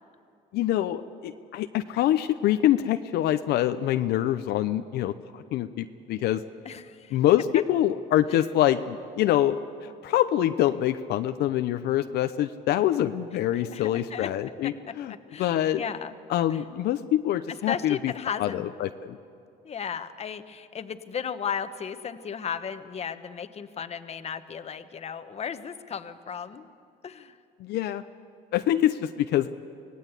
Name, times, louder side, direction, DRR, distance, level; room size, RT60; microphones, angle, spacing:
voice 1, 0.5-5.1 5.5-6.4 7.1-15.1 15.4-15.8 16.3-18.1 18.4-19.2 27.6-28.0 28.5-29.5, left 12 dB, 75° left, 9 dB, 0.7 m, -25 dB
voice 2, 6.6-7.2 8.3-8.4 13.4-14.3 15.1-16.1 16.5-16.6 17.5-18.7 19.6-26.7 27.0-27.4, left 7 dB, 40° left, 10 dB, 1.2 m, -35 dB
25.0 x 18.0 x 8.3 m, 2.5 s
cardioid pair, 110°, 17 cm